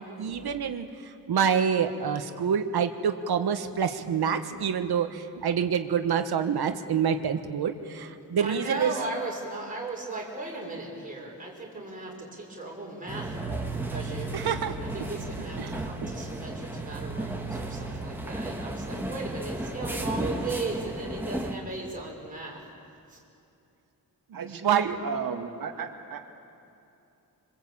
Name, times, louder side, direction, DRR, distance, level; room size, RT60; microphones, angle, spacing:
voice 1, 0.0-8.9 14.3-15.1 15.6-16.1 24.3-24.9, right 7 dB, 75° right, 8 dB, 1.6 m, -27 dB
voice 2, 8.4-13.4 13.9-14.4 14.8-22.7 23.1-23.2, right 3 dB, 20° right, -3 dB, 5.7 m, -37 dB
sound 1, 13.1-21.5, right 2 dB, 5° right, 2.1 m, -34 dB
voice 3, 24.3-26.3, right 6 dB, 60° right, 4 dB, 2.0 m, -33 dB
26.0 x 24.5 x 8.8 m, 2.7 s
wide cardioid pair, 170°, 38 cm